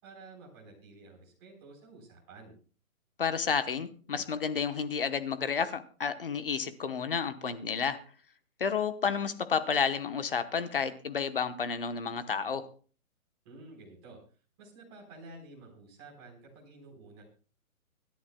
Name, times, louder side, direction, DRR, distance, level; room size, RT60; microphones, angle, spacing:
voice 1, 0.0-2.5 13.4-14.2 14.6-17.2, right 3 dB, 20° right, -3 dB, 4.0 m, -51 dB
voice 2, 3.2-8.0 8.6-12.7, left 6 dB, 40° left, 11 dB, 1.0 m, -31 dB
25.5 x 10.5 x 2.2 m, 0.39 s
hypercardioid pair, 175°, 42 cm